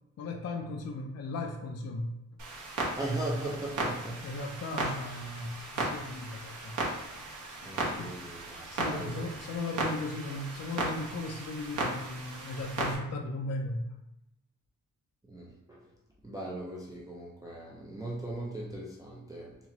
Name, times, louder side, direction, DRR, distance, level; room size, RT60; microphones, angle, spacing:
voice 1, 0.2-2.2 4.2-6.8 7.1-7.2 7.6-7.7 8.0-8.1 8.7-13.9, left 2 dB, 50° left, 2 dB, 0.4 m, -37 dB
Clock, 2.4-13.0, right 2 dB, 60° right, 1.0 m, -36 dB
voice 2, 3.0-4.2 4.8-4.9 7.6-9.4 15.3-15.8 16.2-19.6, right 1 dB, 10° right, -5 dB, 0.4 m, -38 dB
4.2 x 2.9 x 2.9 m, 0.88 s
wide cardioid pair, 175°, 34 cm